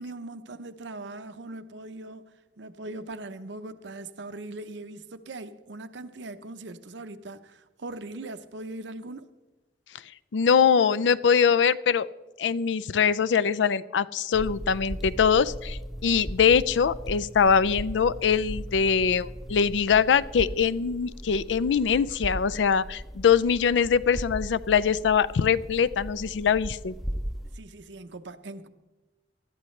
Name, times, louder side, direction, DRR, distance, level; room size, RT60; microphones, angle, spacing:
voice 1, 0.0-2.2 2.6-9.3 27.5-28.7, right 2 dB, 80° right, 0.8 m, -40 dB
voice 2, 10.3-12.1 12.4-26.9, left 6 dB, 85° left, 0.4 m, -23 dB
sound 1, 14.3-27.5, equal, ahead, 0.5 m, -38 dB
20.0 x 12.5 x 3.2 m
head